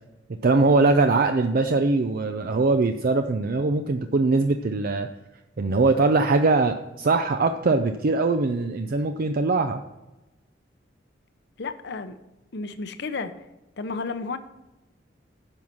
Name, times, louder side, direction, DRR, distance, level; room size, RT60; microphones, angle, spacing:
voice 1, 0.4-5.1 5.6-9.8, right 3 dB, 50° right, 7 dB, 0.5 m, -22 dB
voice 2, 11.6-12.1 12.5-13.3 13.8-14.4, left 4 dB, 60° left, 10 dB, 0.8 m, -32 dB
9.8 x 5.5 x 6.0 m, 1.0 s
head